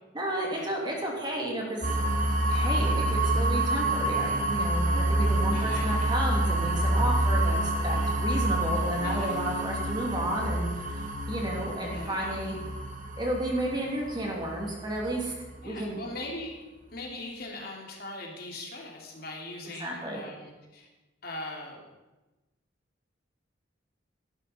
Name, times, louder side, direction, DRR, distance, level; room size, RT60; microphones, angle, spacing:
voice 1, 0.1-1.9 2.5-12.6 13.2-15.3 15.6-16.0 19.8-20.2, right 1 dB, 25° right, -1 dB, 2.8 m, -32 dB
sound 1, 1.8-15.6, right 1 dB, 40° right, 1.7 m, -28 dB
voice 2, 5.5-6.1 9.0-9.6 11.8-12.4 15.6-16.5 16.9-20.9 21.2-21.8, left 2 dB, 50° left, 0 dB, 2.8 m, -40 dB
16.5 x 11.5 x 4.4 m, 1.1 s
head